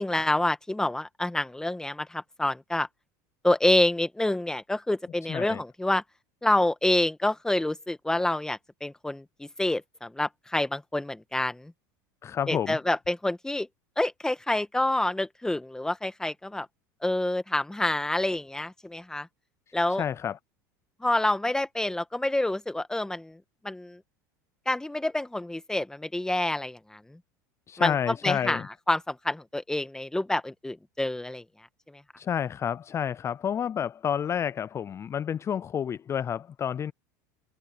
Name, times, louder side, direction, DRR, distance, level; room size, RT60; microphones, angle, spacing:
voice 1, 0.0-2.9 3.4-6.0 6.4-11.7 12.5-13.7 14.0-16.7 17.0-19.3 19.7-20.0 21.0-23.4 23.6-24.0 24.6-27.2 27.8-31.4 31.9-32.0, left 1 dB, 5° left, 1.6 m, -27 dB
voice 2, 5.3-5.6 12.2-12.8 19.9-20.4 27.7-28.7 32.2-36.9, left 8 dB, 30° left, 0.5 m, -30 dB
supercardioid pair, 100°, 10 cm